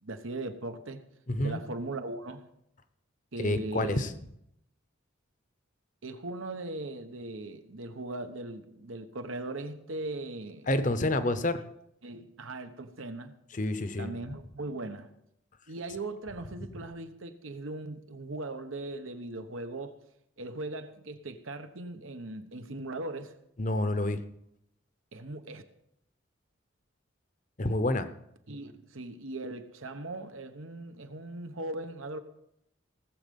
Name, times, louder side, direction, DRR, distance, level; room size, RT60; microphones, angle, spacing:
voice 1, 0.0-1.0 1.4-2.5 3.3-4.1 6.0-10.7 12.0-13.3 14.0-15.1 15.7-20.0 20.4-23.3 25.1-25.6 28.5-32.2, right 2 dB, 80° right, 1.2 m, -39 dB
voice 2, 1.3-1.6 3.4-4.1 10.7-11.6 13.5-14.1 23.6-24.2 27.6-28.1, left 1 dB, 40° left, 0.8 m, -28 dB
18.5 x 7.7 x 5.4 m
head